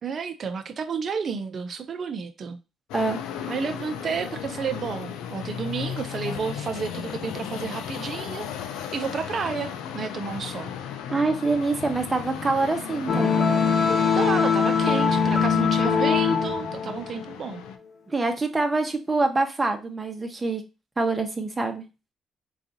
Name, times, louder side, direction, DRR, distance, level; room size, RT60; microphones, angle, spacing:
voice 1, 0.0-2.6 3.5-10.7 14.2-17.6, right 6 dB, 50° right, 0.6 m, -31 dB
sound 1, 2.9-17.8, left 8 dB, 85° left, 0.4 m, -36 dB
voice 2, 11.1-13.3 18.1-20.6 21.0-21.8, right 3 dB, 20° right, 0.8 m, -25 dB
sound 2, 13.1-17.6, left 6 dB, 55° left, 0.8 m, -22 dB
3.6 x 2.4 x 2.8 m
supercardioid pair, 75°, 0 cm